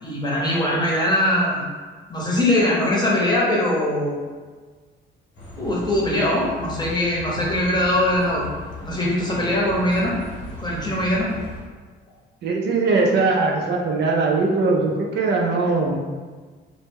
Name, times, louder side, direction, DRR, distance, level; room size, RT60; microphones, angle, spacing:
voice 1, 0.0-1.7 2.1-4.1 5.5-8.4 8.8-10.2 10.6-11.3, left 1 dB, 20° left, -4 dB, 0.8 m, -21 dB
Bus, 5.3-11.6, left 2 dB, 85° left, 1.0 m, -37 dB
voice 2, 12.4-16.0, right 3 dB, 60° right, 0 dB, 0.4 m, -20 dB
2.1 x 2.1 x 3.3 m, 1.4 s
cardioid pair, 90°, 20 cm